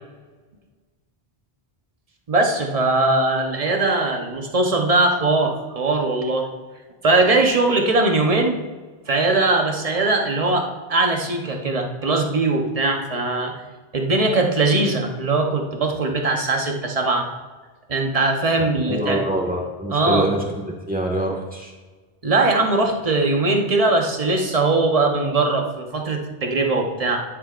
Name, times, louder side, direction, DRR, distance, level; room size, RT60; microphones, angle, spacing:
voice 1, 2.3-6.5 7.0-8.6 9.1-13.6 13.9-17.3 17.9-19.2 19.9-20.3 22.2-27.2, right 2 dB, 35° right, 2 dB, 1.1 m, -20 dB
voice 2, 18.6-21.7, right 1 dB, 10° right, -1 dB, 1.7 m, -25 dB
11.0 x 9.8 x 2.5 m, 1.3 s
omnidirectional pair, 1.1 m